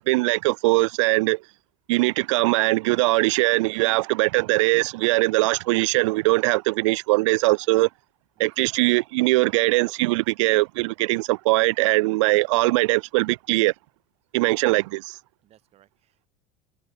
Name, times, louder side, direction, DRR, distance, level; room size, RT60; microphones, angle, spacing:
voice 1, 0.0-1.4 1.9-7.9 8.4-13.7 14.3-15.2, right 22 dB, 85° right, 0.6 m, -21 dB
voice 2, 8.4-8.9 14.8-15.0 15.4-16.3, right 13 dB, 45° right, 5.8 m, -61 dB
supercardioid pair, 130°, 15 cm